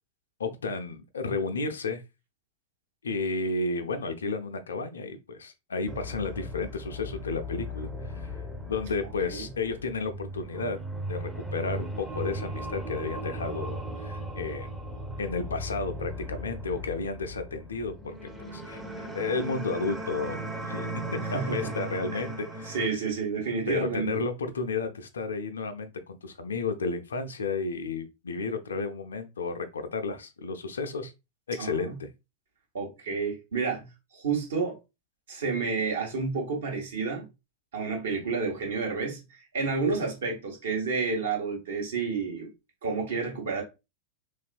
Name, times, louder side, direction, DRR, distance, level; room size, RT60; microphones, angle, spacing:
voice 1, 0.4-2.0 3.0-8.4 8.7-10.8 11.1-14.7 15.2-23.0 23.7-31.1 31.5-32.1 38.1-38.3, left 4 dB, 70° left, 0.4 m, -32 dB
sound 1, 5.9-22.9, right 1 dB, 5° right, 0.5 m, -37 dB
voice 2, 21.3-21.7 22.1-22.3 22.7-24.2 31.6-32.0 32.7-33.9 34.1-34.8 35.3-37.3 37.7-42.5 42.8-43.6, right 4 dB, 65° right, 0.9 m, -30 dB
3.1 x 2.3 x 2.4 m
figure-of-eight pair, 90°, 0 cm